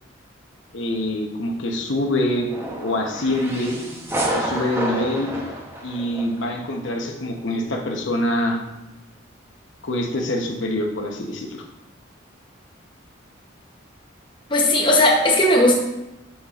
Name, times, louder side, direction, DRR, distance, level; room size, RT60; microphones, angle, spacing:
voice 1, 0.7-2.5 2.8-3.8 4.3-5.3 5.8-8.6 9.8-11.6, left 1 dB, 70° left, 2 dB, 0.9 m, -25 dB
sound 1, 2.5-6.6, right 1 dB, 10° right, 0.8 m, -29 dB
voice 2, 14.5-15.7, left 1 dB, 25° left, 0 dB, 0.8 m, -16 dB
7.4 x 7.2 x 2.4 m, 0.97 s
head